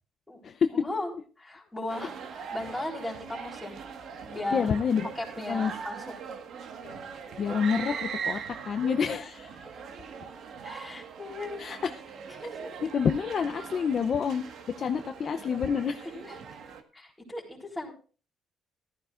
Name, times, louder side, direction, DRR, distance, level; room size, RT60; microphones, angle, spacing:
voice 1, 0.7-1.1 1.4-3.7 4.3-4.6 5.1-6.1 7.5-7.6 9.0-9.2 9.6-9.8 10.6-11.8 12.3-12.7 16.1-16.4 16.9-17.9, left 2 dB, 5° left, -3 dB, 4.0 m, -37 dB
sound 1, 1.9-16.8, right 6 dB, 60° right, 1.6 m, -41 dB
voice 2, 4.5-5.1 5.5-5.7 6.8-7.0 7.4-8.4 8.6-9.5 11.6-11.9 12.8-14.4 14.8-16.1, left 6 dB, 45° left, 6 dB, 0.7 m, -28 dB
14.5 x 13.5 x 2.5 m, 0.37 s
cardioid pair, 145°, 0 cm